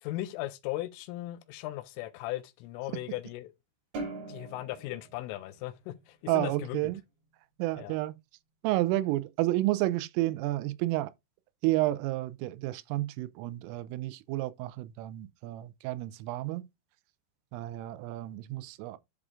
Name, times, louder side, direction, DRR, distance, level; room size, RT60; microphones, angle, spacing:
voice 1, 0.0-3.5 4.3-6.9 7.8-8.0, left 16 dB, 85° left, 3.3 m, -37 dB
sound 1, 3.9-6.5, right 2 dB, 60° right, 7.6 m, -42 dB
voice 2, 6.3-7.0 7.6-8.2 8.6-11.1 11.6-16.6 17.5-19.0, right 17 dB, 90° right, 3.2 m, -31 dB
12.0 x 5.0 x 2.4 m
omnidirectional pair, 5.7 m